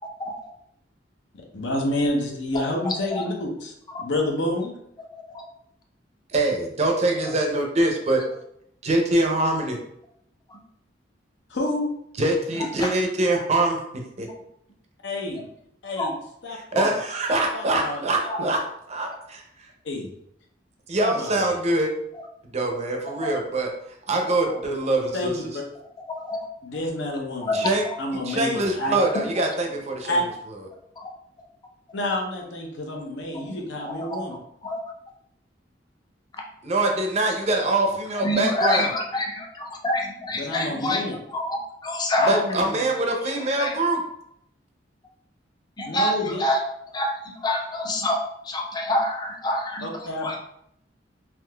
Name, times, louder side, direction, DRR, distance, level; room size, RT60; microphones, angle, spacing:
voice 1, 1.3-3.7 4.0-4.7 11.5-11.9 15.0-15.4 15.8-16.1 16.4-16.9 17.5-18.0 18.4-18.5 19.8-20.1 21.0-21.6 25.1-25.6 26.6-27.7 28.0-29.0 30.1-30.2 31.9-34.4 40.4-41.2 42.2-42.8 45.8-46.4 49.8-50.4, left 1 dB, 75° left, 1 dB, 0.7 m, -29 dB
voice 2, 2.8-3.3 10.5-10.6 12.8-12.9 16.0-16.1 16.7-16.8 18.3-18.4 23.2-23.3 26.1-26.4 27.4-27.6 29.0-29.2 33.4-33.5 33.8-34.2 34.6-34.8 38.2-41.0 41.3-42.3 43.6-43.7 45.8-46.6 46.9-48.2 48.4-50.4, left 1 dB, 25° left, 1 dB, 0.5 m, -27 dB
voice 3, 6.3-8.2 8.8-9.8 12.2-14.3 16.5-18.6 18.9-19.4 20.9-21.9 22.5-23.7 24.1-25.4 27.5-27.8 28.3-30.2 36.6-38.9 42.3-44.0, right 2 dB, 35° right, 2 dB, 0.5 m, -24 dB
3.6 x 2.8 x 2.2 m, 0.74 s
head